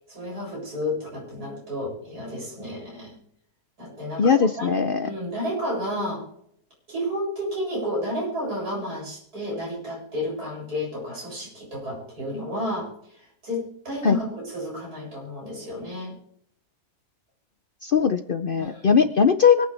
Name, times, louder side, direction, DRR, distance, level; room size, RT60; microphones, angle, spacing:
voice 1, 0.1-3.2 3.8-6.3 6.9-12.9 13.4-16.2 18.6-19.0, left 1 dB, 90° right, -4 dB, 8.0 m, -31 dB
voice 2, 4.2-5.1 14.0-14.2 17.8-19.7, left 6 dB, 50° left, 9 dB, 0.6 m, -20 dB
24.0 x 8.9 x 3.5 m, 0.70 s
omnidirectional pair, 1.6 m